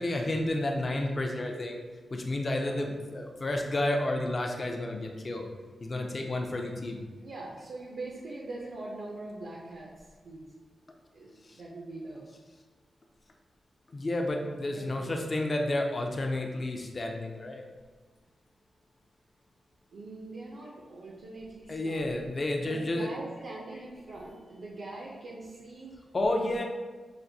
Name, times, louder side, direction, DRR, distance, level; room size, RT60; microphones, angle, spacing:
voice 1, 0.0-1.8 2.1-5.5 5.8-7.0 11.4-11.6 13.9-17.6 21.7-23.1 26.1-26.6, left 1 dB, 30° left, 2 dB, 0.4 m, -31 dB
voice 2, 7.2-10.5 11.1-12.3 14.7-15.2 19.9-22.3 22.6-25.9 26.5-26.6, right 2 dB, 70° right, -3 dB, 0.5 m, -42 dB
5.9 x 2.5 x 2.6 m, 1.3 s
wide cardioid pair, 170°, 0 cm